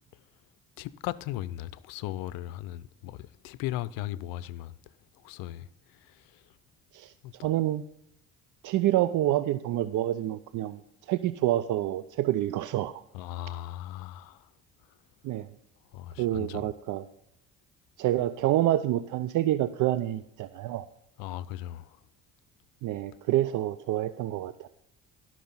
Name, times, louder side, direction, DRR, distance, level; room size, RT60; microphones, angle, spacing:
voice 1, 0.8-6.5 7.2-7.3 13.1-14.5 15.9-16.7 21.2-22.0, left 14 dB, 75° left, 0.5 m, -38 dB
voice 2, 6.9-7.8 8.6-13.0 15.2-15.5 16.2-17.1 18.0-20.9 22.8-24.7, right 13 dB, 60° right, 0.5 m, -28 dB
12.0 x 6.1 x 5.5 m
supercardioid pair, 65°, 35 cm